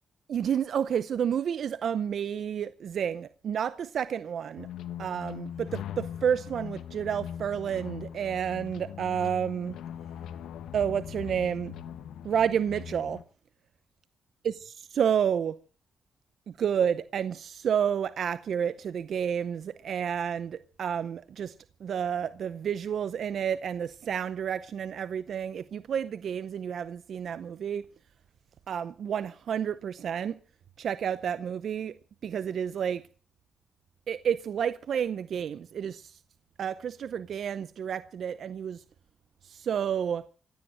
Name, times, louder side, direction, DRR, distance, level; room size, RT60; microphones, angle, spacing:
voice 1, 0.3-4.7 5.0-9.7 10.7-11.7 12.2-13.2 14.4-15.6 16.5-21.5 21.8-27.9 28.7-30.4 30.8-31.9 32.2-33.0 34.1-36.2 36.6-38.8 39.4-40.3, right 8 dB, 70° right, 0.7 m, -30 dB
sound 1, 4.6-13.2, left 9 dB, 85° left, 1.1 m, -40 dB
16.0 x 10.5 x 7.5 m
supercardioid pair, 60°, 0 cm